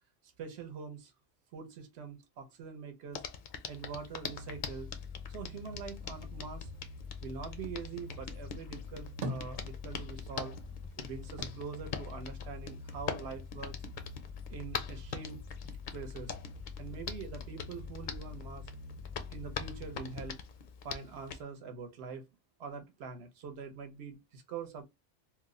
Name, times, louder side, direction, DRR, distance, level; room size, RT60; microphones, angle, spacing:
voice 1, 0.4-1.1 1.5-3.2 3.7-4.9 5.3-6.7 7.2-10.5 11.0-13.7 14.5-15.4 15.9-16.3 16.8-18.7 19.3-20.4 20.8-22.2 22.6-24.8, right 5 dB, 70° right, 1.0 m, -44 dB
Hands, 3.1-21.4, left 6 dB, 60° left, 0.5 m, -44 dB
sound 1, 4.3-20.4, left 5 dB, 35° right, 0.8 m, -46 dB
sound 2, 8.8-10.3 10.6-12.9 13.3-14.2, right 1 dB, 85° right, 1.1 m, -44 dB
2.9 x 2.0 x 3.6 m
omnidirectional pair, 1.2 m